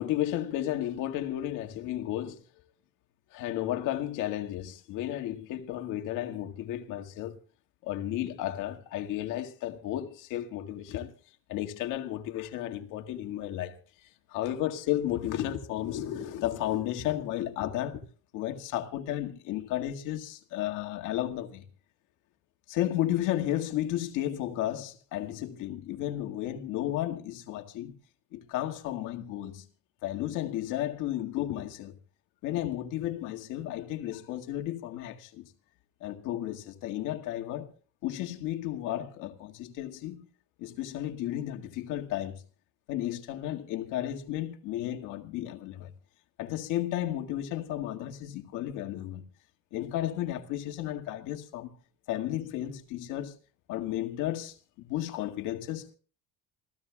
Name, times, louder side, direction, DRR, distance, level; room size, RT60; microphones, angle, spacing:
voice 1, 0.0-2.4 3.3-7.4 7.8-11.1 11.5-13.8 14.3-18.0 18.3-21.7 22.7-27.9 28.3-29.7 30.0-32.0 32.4-35.4 36.0-37.7 38.0-40.3 40.6-42.4 42.9-45.9 46.4-49.2 49.7-51.7 52.1-53.4 53.7-56.0, left 13 dB, 80° left, 2.0 m, -33 dB
27.0 x 16.5 x 2.4 m
cardioid pair, 135°, 31 cm